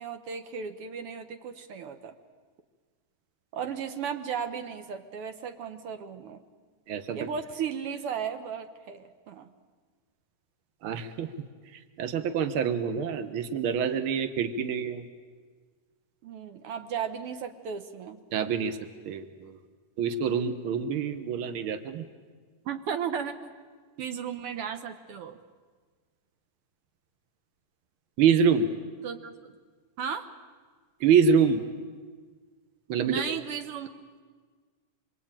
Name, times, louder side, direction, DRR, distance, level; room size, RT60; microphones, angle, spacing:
voice 1, 0.0-2.1 3.5-6.4 7.1-9.5 16.2-18.2 22.6-23.5 24.0-25.4 29.0-29.5 30.0-30.3 33.1-33.9, right 7 dB, 70° right, 8 dB, 1.4 m, -35 dB
voice 2, 6.9-7.2 10.8-11.3 12.0-15.0 18.3-18.8 19.0-19.6 20.0-22.0 28.2-28.7 31.0-31.6 32.9-33.2, right 6 dB, 85° right, 10 dB, 1.1 m, -26 dB
26.5 x 23.0 x 8.9 m, 1.5 s
omnidirectional pair, 4.1 m